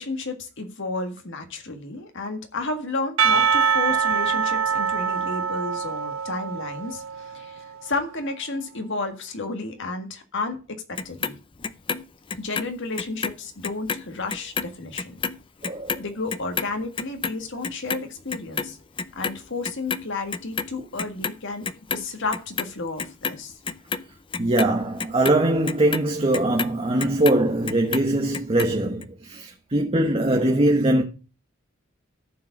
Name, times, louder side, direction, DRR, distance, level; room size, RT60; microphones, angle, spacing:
voice 1, 0.0-11.4 12.4-15.2 16.0-18.8 19.1-23.5, left 3 dB, 65° left, 1.7 m, -32 dB
Percussion / Church bell, 3.2-7.7, right 6 dB, 70° right, 0.5 m, -24 dB
Clock, 11.0-13.4 13.6-20.1 20.3-21.4 21.6-22.7 23.0-27.4 27.7-28.7 29.0-29.1, left 5 dB, 25° left, 0.5 m, -30 dB
voice 2, 15.6-16.0 24.4-31.0, right 1 dB, 30° right, 1.1 m, -22 dB
14.0 x 4.8 x 6.0 m
head